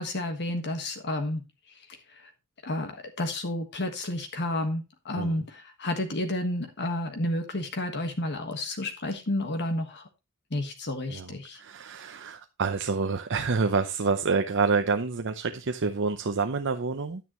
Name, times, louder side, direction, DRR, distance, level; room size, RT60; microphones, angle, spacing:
voice 1, 0.0-1.4 2.1-2.2 2.6-10.1 10.5-11.6, left 1 dB, 50° left, 1.5 m, -31 dB
voice 2, 11.1-17.2, right 4 dB, 55° right, 0.7 m, -28 dB
10.5 x 9.4 x 3.0 m
head